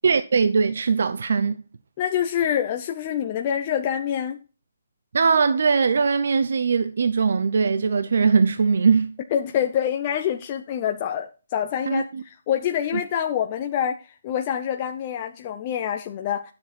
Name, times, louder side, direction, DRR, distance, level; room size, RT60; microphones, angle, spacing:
voice 1, 0.0-1.6 5.1-9.2 11.9-12.2 12.9-13.0, right 5 dB, 55° right, 0.6 m, -21 dB
voice 2, 2.0-4.4 9.3-16.5, left 9 dB, 20° left, 0.6 m, -26 dB
10.5 x 7.2 x 4.2 m
hypercardioid pair, 175°, 0 cm